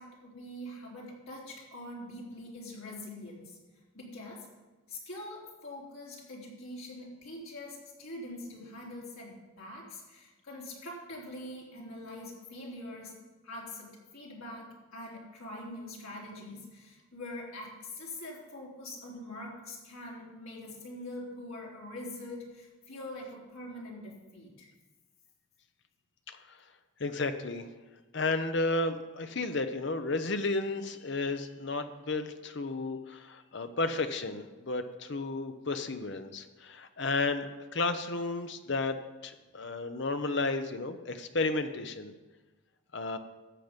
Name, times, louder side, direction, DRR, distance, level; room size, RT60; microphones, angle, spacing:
voice 1, 0.0-3.6 3.9-4.5 4.9-24.7, left 1 dB, 85° left, -4 dB, 3.6 m, -44 dB
voice 2, 26.3-26.6 27.0-27.7 28.1-39.0 39.2-42.1 42.9-43.2, left 3 dB, 55° left, 8 dB, 0.8 m, -33 dB
13.5 x 7.7 x 5.2 m, 1.2 s
head